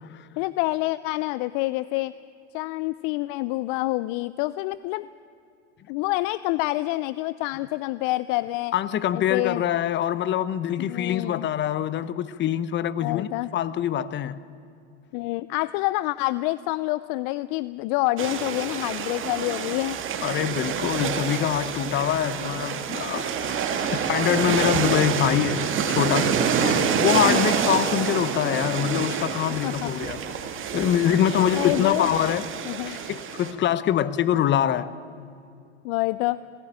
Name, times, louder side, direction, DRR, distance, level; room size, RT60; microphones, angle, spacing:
voice 1, 0.4-2.1 2.5-5.1 5.9-8.7 9.1-9.6 10.9-11.5 13.0-13.5 15.1-20.0 26.6-26.9 27.3-27.5 29.6-29.9 31.6-32.1 32.7-33.0 35.8-36.4, left 19 dB, 50° left, 0.5 m, -27 dB
voice 2, 8.7-14.4 20.2-23.6 23.9-26.4 27.0-30.2 30.7-32.5 32.9-34.9, left 10 dB, 30° left, 0.9 m, -24 dB
sound 1, 18.2-33.5, right 7 dB, 35° right, 2.1 m, -27 dB
20.5 x 15.5 x 8.9 m
hypercardioid pair, 100°, 35 cm